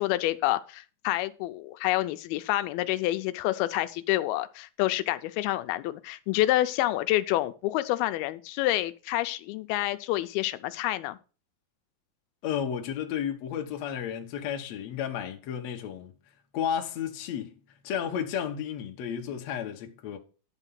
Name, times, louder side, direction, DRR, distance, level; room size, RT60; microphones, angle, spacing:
voice 1, 0.0-11.2, left 16 dB, 85° left, 2.5 m, -28 dB
voice 2, 12.4-16.1 16.5-17.5 17.8-20.2, left 8 dB, 65° left, 1.7 m, -32 dB
11.0 x 4.5 x 5.7 m
omnidirectional pair, 4.4 m